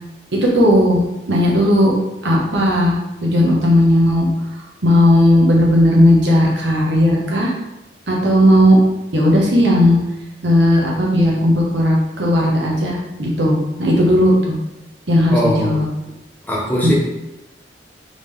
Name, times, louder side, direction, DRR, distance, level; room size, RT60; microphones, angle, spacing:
voice 1, 0.3-1.0 1.3-1.9 2.2-2.9 3.2-4.3 4.8-7.5 8.1-8.8 9.1-10.0 10.4-14.6 15.1-15.9 16.8-16.9, left 1 dB, 85° right, -2 dB, 1.1 m, -15 dB
voice 2, 15.3-15.8 16.5-16.9, right 1 dB, 10° left, -4 dB, 0.8 m, -20 dB
3.9 x 3.6 x 3.3 m, 0.94 s
head